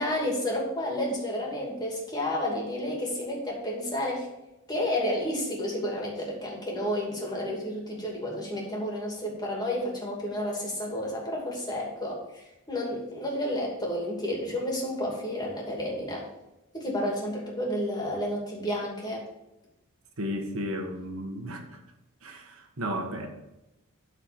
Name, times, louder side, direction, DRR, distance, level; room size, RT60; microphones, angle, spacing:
voice 1, 0.0-4.3 4.7-16.3 16.7-19.2, left 1 dB, 20° left, -2 dB, 2.6 m, -31 dB
voice 2, 20.2-21.8 22.2-23.3, equal, 70° right, 4 dB, 1.4 m, -34 dB
13.0 x 4.5 x 5.2 m, 0.92 s
head